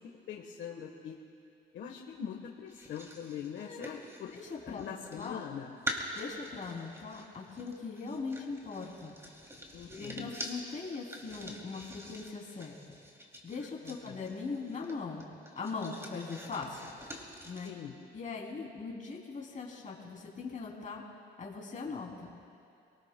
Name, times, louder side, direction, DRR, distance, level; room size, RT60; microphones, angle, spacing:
voice 1, 0.3-1.2 1.7-4.3 4.7-5.7 9.7-10.3 13.8-14.2 17.6-17.9, left 8 dB, 75° left, 0 dB, 1.2 m, -42 dB
sound 1, 2.7-5.4 5.8-17.7, equal, 15° right, 2.7 m, -45 dB
voice 2, 3.5-3.8 4.3-4.9 5.1-5.4 6.1-9.2 9.8-12.7 13.4-15.3 15.5-16.9 17.4-17.7 18.1-21.0 21.4-22.3, left 4 dB, 40° left, -2 dB, 3.0 m, -40 dB
28.5 x 19.0 x 2.2 m, 2.5 s
cardioid pair, 90°, 20 cm